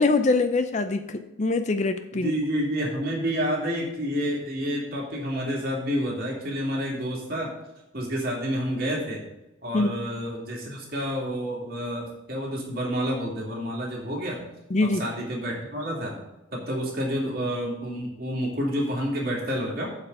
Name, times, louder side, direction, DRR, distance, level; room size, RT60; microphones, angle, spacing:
voice 1, 0.0-2.3 9.7-9.9 14.7-15.0, left 3 dB, 35° left, 9 dB, 0.5 m, -23 dB
voice 2, 2.2-7.5 7.9-9.2 9.6-14.5 15.0-16.2 16.5-19.9, equal, 50° right, -2 dB, 2.6 m, -29 dB
8.3 x 4.9 x 6.6 m, 0.94 s
head